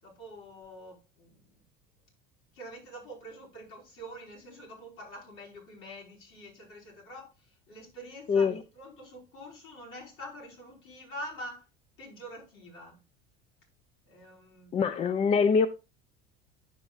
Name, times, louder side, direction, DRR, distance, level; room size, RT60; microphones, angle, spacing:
voice 1, 0.0-1.6 2.5-8.5 8.7-11.6 12.0-13.0 14.1-14.8, equal, 65° left, 4.7 m, -46 dB
voice 2, 8.3-8.6 14.7-15.7, left 5 dB, 30° left, 0.4 m, -24 dB
9.6 x 6.9 x 2.4 m
cardioid pair, 135°, 21 cm